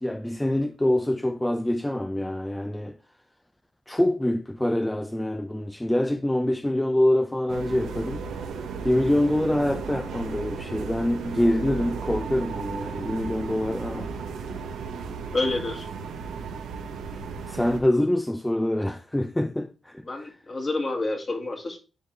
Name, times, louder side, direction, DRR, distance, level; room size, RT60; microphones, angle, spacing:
voice 1, 0.0-3.0 3.9-8.3 8.8-14.1 17.5-20.1, left 1 dB, 10° left, 0.5 m, -25 dB
sound 1, 7.5-17.8, right 5 dB, 85° right, 0.9 m, -35 dB
voice 2, 15.3-15.9 20.1-21.8, left 2 dB, 45° left, 2.0 m, -28 dB
9.9 x 3.8 x 3.3 m
supercardioid pair, 50°, 0 cm